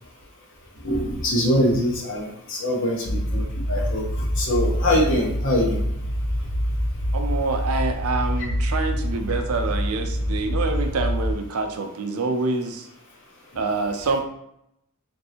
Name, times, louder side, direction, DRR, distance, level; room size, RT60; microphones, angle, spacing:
voice 1, 0.8-3.4 3.7-4.0 4.4-5.8, left 1 dB, 55° left, -1 dB, 0.8 m, -23 dB
sound 1, 3.1-11.3, equal, 35° left, 0.5 m, -26 dB
voice 2, 7.1-12.9 13.6-14.2, right 3 dB, 75° right, 5 dB, 0.4 m, -26 dB
3.2 x 2.6 x 2.8 m, 0.79 s
head